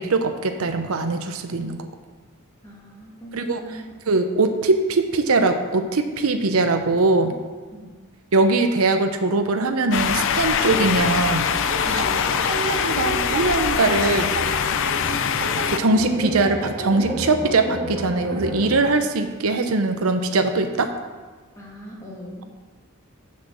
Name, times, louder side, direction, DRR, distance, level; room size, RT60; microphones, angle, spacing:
voice 1, 0.0-1.9 3.3-3.6 4.1-7.4 8.3-11.5 11.9-12.0 12.6-14.3 15.4-20.9, right 3 dB, 80° right, 7 dB, 0.7 m, -21 dB
voice 2, 2.6-3.8 7.7-7.9 11.8-12.2 21.6-22.4, equal, 15° left, -4 dB, 2.2 m, -39 dB
sound 1, 9.9-15.8, left 7 dB, 65° left, 0.5 m, -23 dB
sound 2, 10.7-18.8, right 1 dB, 35° right, 2.2 m, -31 dB
6.4 x 6.1 x 7.2 m, 1.4 s
head